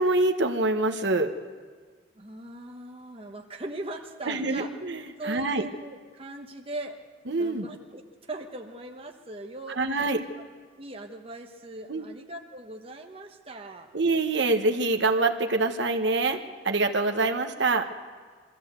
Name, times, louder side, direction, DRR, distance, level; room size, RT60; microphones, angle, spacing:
voice 1, 0.0-1.3 4.3-5.6 7.3-7.7 9.8-10.2 11.9-12.1 13.9-16.4 16.6-17.9, right 2 dB, 65° right, 5 dB, 1.3 m, -25 dB
voice 2, 2.1-4.7 5.2-7.0 7.3-9.8 10.8-13.9, right 2 dB, 30° right, 3 dB, 1.1 m, -40 dB
23.5 x 15.0 x 8.1 m, 1.5 s
head